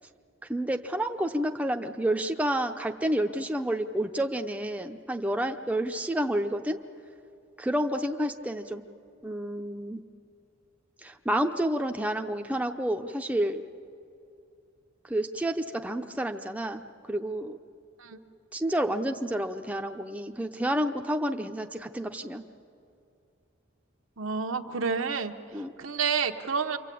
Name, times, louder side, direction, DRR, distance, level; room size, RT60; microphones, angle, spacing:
voice 1, 0.5-6.8 7.6-8.8 9.2-10.0 11.0-13.6 15.1-16.8 17.1-17.6 18.5-22.4 25.5-25.7, right 1 dB, 5° right, 4 dB, 0.7 m, -29 dB
voice 2, 24.2-25.3 25.8-26.8, right 5 dB, 75° right, 5 dB, 1.1 m, -29 dB
27.5 x 24.0 x 8.5 m, 2.5 s
head